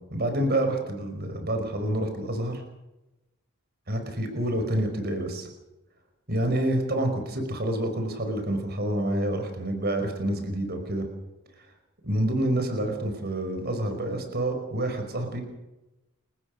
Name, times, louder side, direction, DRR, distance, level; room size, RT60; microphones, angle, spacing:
voice 1, 0.1-2.6 3.9-5.5 6.3-11.1 12.0-15.4, right 1 dB, 45° right, 6 dB, 5.4 m, -28 dB
30.0 x 15.0 x 6.7 m, 0.97 s
head